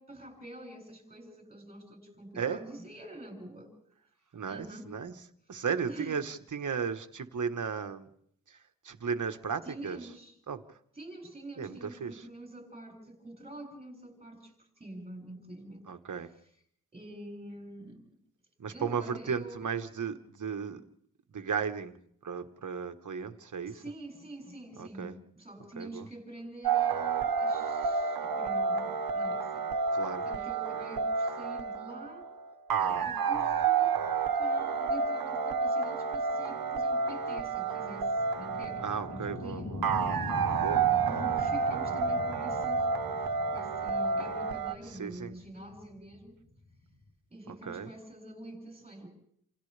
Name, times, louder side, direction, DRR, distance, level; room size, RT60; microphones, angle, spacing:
voice 1, 0.0-3.7 4.5-4.9 5.9-6.2 9.6-10.3 10.9-15.9 16.9-18.0 18.7-19.7 23.7-29.7 30.2-32.3 32.8-39.7 40.2-40.6 41.0-42.9 43.2-46.4 47.3-49.1, right 1 dB, 15° right, 1 dB, 7.3 m, -46 dB
voice 2, 4.3-5.1 5.5-8.1 8.5-8.6 8.8-10.0 10.5-10.6 11.6-12.2 15.9-16.3 18.6-20.8 21.3-21.9 22.2-23.8 24.8-25.1 25.8-26.0 29.9-30.2 32.7-33.1 38.8-39.8 40.5-40.8 45.0-45.3 47.6-47.9, right 6 dB, 60° right, 8 dB, 1.4 m, -35 dB
sound 1, 26.6-44.7, right 5 dB, 85° right, 1.2 m, -30 dB
sound 2, 36.4-47.1, left 2 dB, 85° left, 3.8 m, -43 dB
29.0 x 27.5 x 3.4 m, 0.66 s
wide cardioid pair, 120°, 34 cm